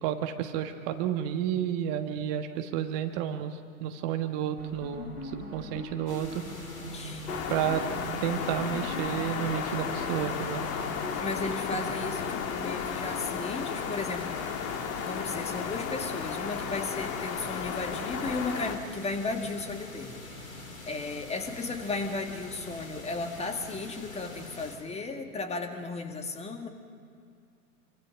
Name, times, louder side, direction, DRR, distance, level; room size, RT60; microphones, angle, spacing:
voice 1, 0.0-6.4 7.5-7.9 8.2-10.6, right 10 dB, 40° right, 7 dB, 1.5 m, -31 dB
sound 1, 4.6-13.4, left 1 dB, 90° left, 2.2 m, -42 dB
sound 2, 6.1-24.8, left 2 dB, 70° left, 3.7 m, -45 dB
voice 2, 6.9-7.4 11.2-14.7 15.0-20.6 20.9-26.7, left 3 dB, 15° left, 5 dB, 2.0 m, -35 dB
sound 3, 7.3-18.8, left 7 dB, 35° left, 1.8 m, -34 dB
27.0 x 24.5 x 6.0 m, 2.3 s
figure-of-eight pair, 90°, 42 cm